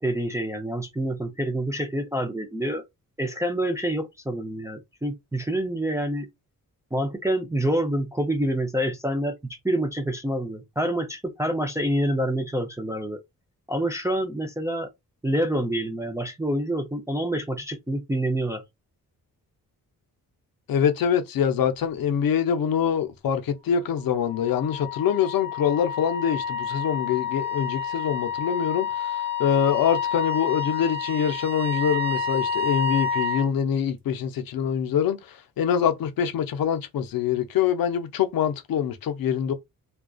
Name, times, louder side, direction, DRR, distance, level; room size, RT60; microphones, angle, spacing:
voice 1, 0.0-2.8 3.2-6.3 6.9-13.2 13.7-14.9 15.2-18.6, right 1 dB, 10° right, 0.4 m, -27 dB
voice 2, 20.7-39.5, left 8 dB, 80° left, 0.5 m, -25 dB
Wind instrument woodwind instrument, 24.0-33.5, left 6 dB, 45° right, 1.0 m, -29 dB
2.5 x 2.2 x 2.3 m
wide cardioid pair, 115°, 35 cm